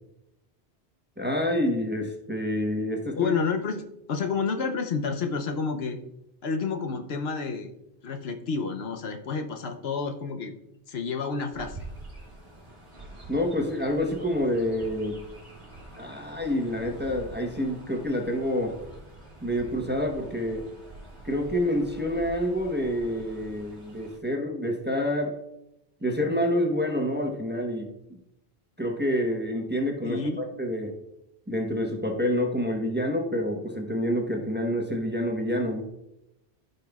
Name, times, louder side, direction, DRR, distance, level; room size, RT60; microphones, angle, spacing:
voice 1, 1.2-3.3 13.3-15.2 16.0-18.7 19.4-20.6 21.2-25.3 26.0-27.9 28.8-30.9 31.5-35.8, left 1 dB, 10° right, 1 dB, 0.9 m, -27 dB
voice 2, 3.2-3.8 4.1-6.0 6.4-7.7 8.0-10.5 10.9-11.8 30.0-30.4, left 5 dB, 70° left, 5 dB, 1.0 m, -29 dB
Chirp tweet, 11.5-24.2, right 1 dB, 30° right, 2.6 m, -46 dB
14.0 x 5.3 x 2.3 m, 0.85 s
omnidirectional pair, 1.1 m